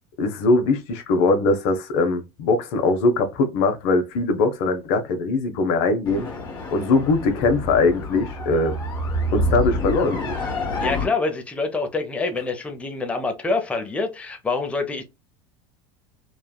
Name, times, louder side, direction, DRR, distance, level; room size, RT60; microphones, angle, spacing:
voice 1, 0.2-6.3 6.7-8.8 9.3-10.4, left 3 dB, 70° left, 0.7 m, -21 dB
sound 1, 6.1-11.1, left 1 dB, 35° left, 1.3 m, -27 dB
voice 2, 10.8-15.0, left 3 dB, 10° left, 0.5 m, -26 dB
3.2 x 2.2 x 2.2 m
supercardioid pair, 120°, 13 cm